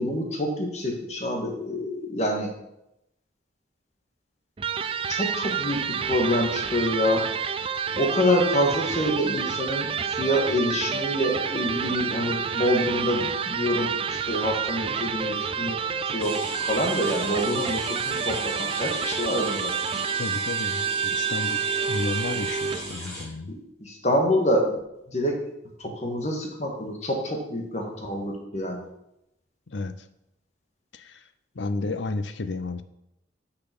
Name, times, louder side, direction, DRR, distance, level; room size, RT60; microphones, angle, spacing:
voice 1, 0.0-2.5 5.1-7.3 7.9-15.8 16.1-16.4 16.7-19.7 23.5-24.8 25.1-25.4 25.8-28.8, equal, 35° left, 1 dB, 1.7 m, -26 dB
Electric guitar, 4.6-22.9, right 6 dB, 30° right, 0.3 m, -29 dB
sound 1, 16.2-23.2, equal, 5° left, 3.7 m, -38 dB
voice 2, 20.2-21.6 21.9-23.5 29.7-29.9 30.9-31.2 31.5-32.8, left 3 dB, 75° left, 11 dB, 0.6 m, -32 dB
6.6 x 5.9 x 6.0 m, 0.84 s
head